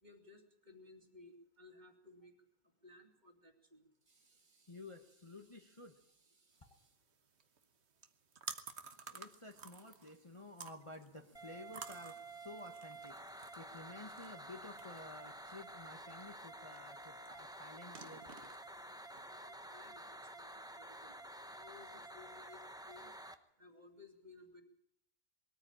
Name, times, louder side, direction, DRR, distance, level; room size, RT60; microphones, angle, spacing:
voice 1, 0.0-2.3 2.8-3.8 19.3-21.1 21.6-22.6 22.9-23.1 23.6-24.6, left 3 dB, 30° right, 4 dB, 2.7 m, -59 dB
voice 2, 4.1-6.9 8.9-18.5, left 2 dB, 25° left, 3 dB, 1.3 m, -53 dB
sound 1, 6.5-19.2, right 6 dB, 50° right, 1.4 m, -54 dB
sound 2, 11.3-23.3, right 1 dB, 5° right, 0.8 m, -51 dB
21.0 x 14.0 x 8.9 m, 0.72 s
omnidirectional pair, 1.5 m